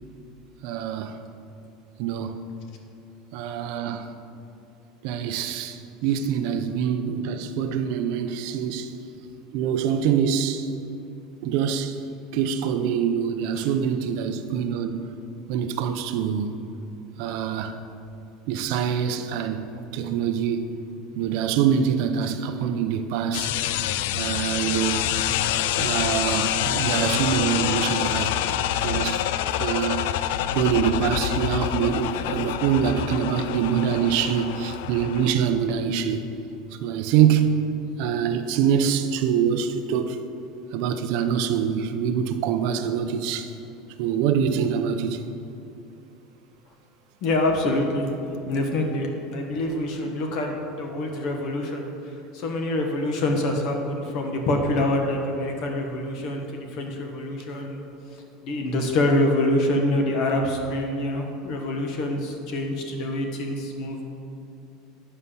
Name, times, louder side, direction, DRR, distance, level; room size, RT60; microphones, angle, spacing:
voice 1, 0.6-1.2 2.0-2.4 3.3-4.1 5.0-8.9 9.5-10.7 11.4-12.0 12.3-15.1 15.5-16.6 17.2-17.7 18.5-19.6 19.9-20.7 21.2-23.5 24.2-25.1 25.8-28.4 28.8-29.2 29.6-30.1 30.5-36.2 36.8-37.5 38.0-40.2 40.7-43.5 44.0-45.2, right 8 dB, 55° right, 0.6 m, -25 dB
sound 1, 23.3-35.3, left 12 dB, 75° left, 0.3 m, -26 dB
voice 2, 47.2-48.1 48.5-51.8 52.3-57.8 58.4-64.0, left 1 dB, 45° left, 1.4 m, -25 dB
9.7 x 5.6 x 6.9 m
cardioid pair, 165°, 0 cm